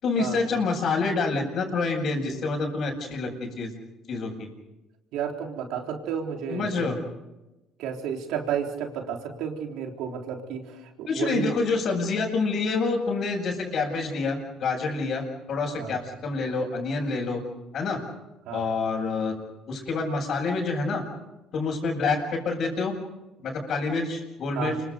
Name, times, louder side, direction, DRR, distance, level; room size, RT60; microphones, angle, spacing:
voice 1, 0.0-3.7 4.1-4.5 6.5-7.0 11.1-17.4 17.7-18.0 18.5-19.3 19.7-21.0 21.5-22.9 23.4-24.7, left 4 dB, 60° left, -6 dB, 7.0 m, -27 dB
voice 2, 5.1-6.9 7.8-11.5 15.8-15.9 18.5-18.6 24.5-24.8, right 7 dB, 75° right, 2 dB, 3.7 m, -32 dB
28.5 x 25.0 x 5.3 m, 1.0 s
supercardioid pair, 85°, 0 cm